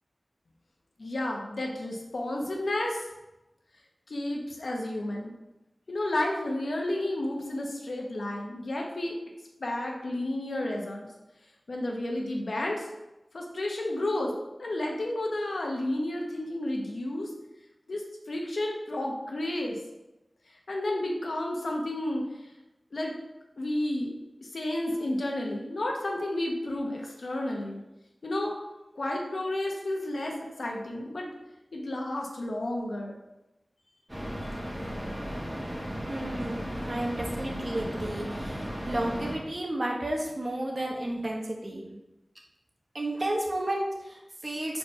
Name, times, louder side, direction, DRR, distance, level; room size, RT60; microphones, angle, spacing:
voice 1, 1.0-3.0 4.1-5.3 5.9-9.2 9.6-11.1 11.7-12.9 13.3-14.3 14.6-17.3 17.9-19.8 20.7-22.3 22.9-23.1 23.6-24.1 24.5-27.8 28.2-28.5 29.0-31.3 31.7-33.2, left 1 dB, 80° left, 0 dB, 1.2 m, -31 dB
sound 1, 34.1-39.4, equal, 10° right, 1.7 m, -35 dB
voice 2, 36.1-41.9 42.9-44.8, right 1 dB, 45° right, -1 dB, 1.3 m, -32 dB
5.2 x 4.4 x 5.6 m, 0.97 s
wide cardioid pair, 80°, 0 cm